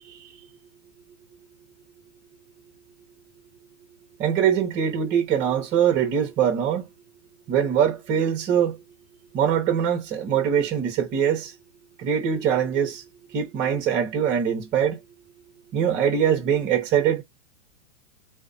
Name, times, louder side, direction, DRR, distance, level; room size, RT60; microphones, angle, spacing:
voice 1, 4.2-6.8 7.5-8.8 9.3-11.5 12.0-13.0 13.3-15.0 15.7-17.2, right 8 dB, 30° right, 0.9 m, -23 dB
2.7 x 2.1 x 2.4 m
hypercardioid pair, 130°, 36 cm